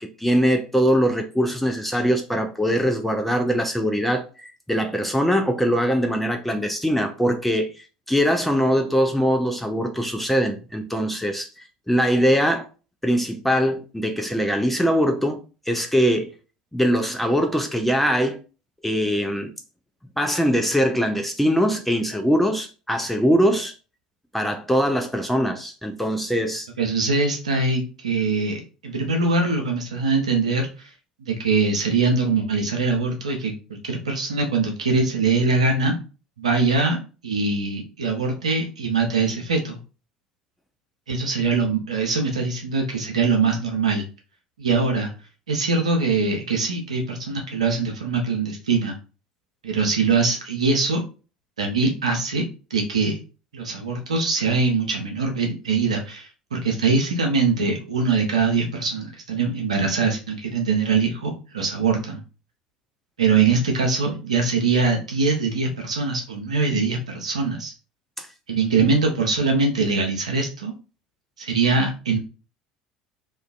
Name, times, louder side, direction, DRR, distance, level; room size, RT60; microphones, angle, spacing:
voice 1, 0.0-12.7 13.0-15.4 15.7-16.3 16.7-18.4 18.8-19.5 20.2-23.7 24.3-26.7 68.2-68.3, equal, 5° left, 0.4 m, -22 dB
voice 2, 26.8-30.9 31.2-36.0 36.4-39.8 41.1-44.0 44.6-45.1 45.5-49.0 49.6-51.0 51.6-53.2 53.5-62.2 63.2-67.7 68.5-70.7 71.4-72.2, right 4 dB, 80° right, 0.5 m, -22 dB
2.4 x 2.2 x 2.3 m
figure-of-eight pair, 65°, 3 cm